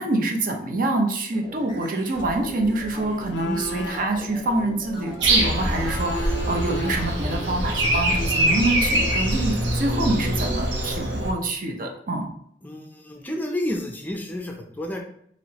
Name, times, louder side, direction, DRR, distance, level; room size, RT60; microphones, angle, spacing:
voice 1, 0.0-12.3, right 2 dB, 50° right, 2 dB, 0.7 m, -26 dB
sound 1, 1.3-8.5, right 1 dB, 30° right, 1.5 m, -41 dB
sound 2, 2.2-8.1, equal, 80° left, 0.4 m, -35 dB
Breathing, 5.2-11.3, right 1 dB, 85° right, 1.0 m, -24 dB
voice 2, 12.6-15.0, left 1 dB, 10° left, 2 dB, 0.4 m, -30 dB
4.4 x 3.0 x 2.9 m, 0.68 s
head